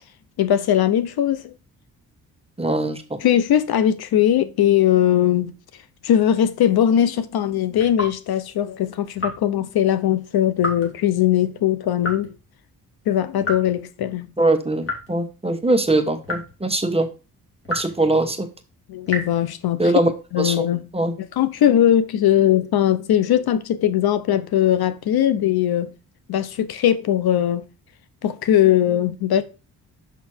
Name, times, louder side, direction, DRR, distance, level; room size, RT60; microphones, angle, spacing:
voice 1, 0.4-1.5 3.2-5.5 6.0-12.4 13.1-14.3 18.9-19.8 20.3-20.9 21.2-25.9 26.3-27.6 28.2-29.4, left 11 dB, 75° left, 0.8 m, -20 dB
voice 2, 2.6-3.2 14.4-17.1 17.7-18.5 19.8-20.1 20.4-20.7 20.9-21.1, right 2 dB, 15° right, 1.1 m, -21 dB
sound 1, 7.7-8.2 9.2-9.5 10.6-11.0 12.0-12.4 13.4-13.8 14.8-15.2 16.2-16.6 17.6-18.1 19.1-19.4, left 1 dB, 35° left, 3.5 m, -30 dB
6.1 x 5.9 x 4.4 m
cardioid pair, 85°, 38 cm